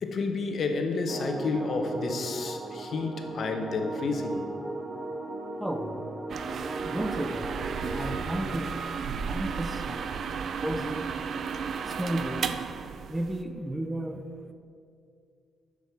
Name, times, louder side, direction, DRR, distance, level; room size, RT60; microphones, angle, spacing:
voice 1, 0.0-4.5, left 3 dB, 50° left, 5 dB, 1.1 m, -30 dB
sound 1, 1.1-8.2, right 2 dB, 30° right, 0.9 m, -37 dB
voice 2, 5.6-6.0 6.8-7.5 8.0-10.1 10.6-11.1 11.9-12.5 13.1-14.2, right 1 dB, 10° right, 6 dB, 0.6 m, -33 dB
sound 2, 6.3-13.4, right 6 dB, 55° right, 0.5 m, -34 dB
7.4 x 6.4 x 7.5 m, 2.3 s
cardioid pair, 110°, 0 cm